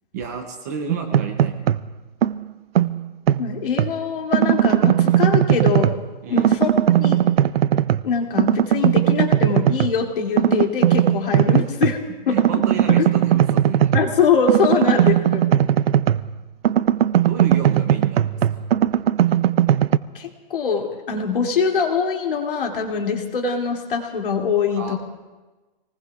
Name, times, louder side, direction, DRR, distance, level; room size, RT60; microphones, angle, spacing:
voice 1, 0.1-1.8 6.2-6.6 12.3-14.0 14.6-15.0 17.2-18.7 24.7-24.9, right 6 dB, 20° right, 4 dB, 0.6 m, -32 dB
sound 1, 0.9-1.9 2.2-4.0 4.3-6.1 6.4-8.1 8.4-10.0 10.4-12.0 12.4-16.3 16.6-20.0, right 11 dB, 85° right, 0.5 m, -18 dB
voice 2, 3.4-5.9 6.3-6.7 7.0-7.2 8.0-12.0 12.3-13.1 13.9-15.6 20.1-25.0, left 6 dB, 65° left, 1 dB, 2.6 m, -23 dB
29.0 x 19.5 x 2.4 m, 1.2 s
hypercardioid pair, 175°, 29 cm